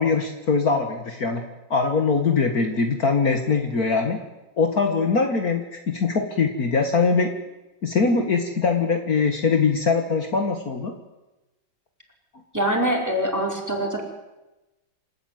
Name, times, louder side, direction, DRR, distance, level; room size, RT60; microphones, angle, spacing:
voice 1, 0.0-1.4 1.7-4.2 4.6-7.3 7.8-10.9, left 4 dB, 50° left, 4 dB, 2.1 m, -22 dB
voice 2, 12.5-14.0, right 1 dB, 10° right, 0 dB, 4.9 m, -24 dB
27.5 x 13.5 x 9.5 m, 1.0 s
omnidirectional pair, 2.0 m